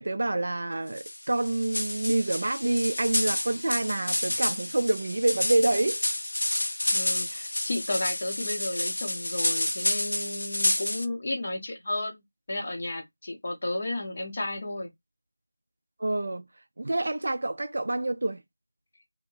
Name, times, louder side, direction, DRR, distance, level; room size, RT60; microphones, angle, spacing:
voice 1, 0.0-6.0 16.0-16.4 16.8-18.4, right 2 dB, 40° right, 0.3 m, -27 dB
sound 1, 1.0-11.0, left 1 dB, 65° left, 0.5 m, -29 dB
voice 2, 6.9-14.9, left 2 dB, 25° left, 0.6 m, -33 dB
2.8 x 2.6 x 2.6 m
figure-of-eight pair, 180°, 0 cm